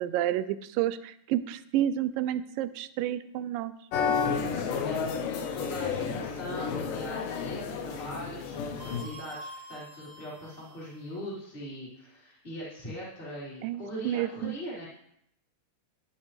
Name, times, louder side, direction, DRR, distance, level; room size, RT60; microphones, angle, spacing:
voice 1, 0.0-3.7 13.6-14.6, right 12 dB, 85° right, 13 dB, 2.3 m, -30 dB
sound 1, 3.9-9.0, left 6 dB, 75° left, 2.6 m, -31 dB
voice 2, 4.3-14.9, equal, 15° left, -7 dB, 4.1 m, -41 dB
sound 2, 8.8-11.2, equal, 45° right, 2.4 m, -47 dB
15.0 x 10.5 x 3.2 m, 0.73 s
omnidirectional pair, 4.0 m